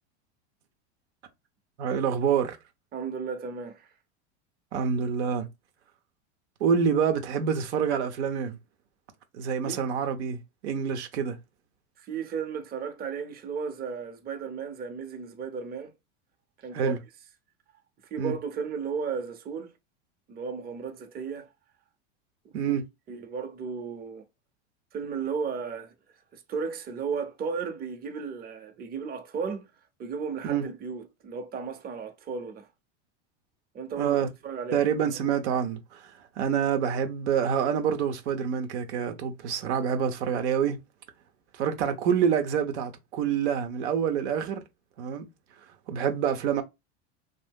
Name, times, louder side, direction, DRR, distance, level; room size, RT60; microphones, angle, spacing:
voice 1, 1.8-2.6 4.7-5.5 6.6-8.6 9.4-11.4 16.7-17.0 18.2-18.3 22.5-22.8 30.4-30.6 34.0-34.3 34.7-36.1 36.4-40.8 41.5-44.6 45.0-45.3 45.9-46.6, right 7 dB, 80° right, 0.8 m, -27 dB
voice 2, 2.9-3.9 9.6-9.8 12.0-15.9 16.6-17.0 18.1-19.7 20.3-21.5 22.4-22.8 23.1-24.2 24.9-25.9 26.3-29.7 30.0-32.7 33.7-34.8, right 6 dB, 25° right, 0.7 m, -34 dB
2.7 x 2.0 x 3.5 m
hypercardioid pair, 105°, 34 cm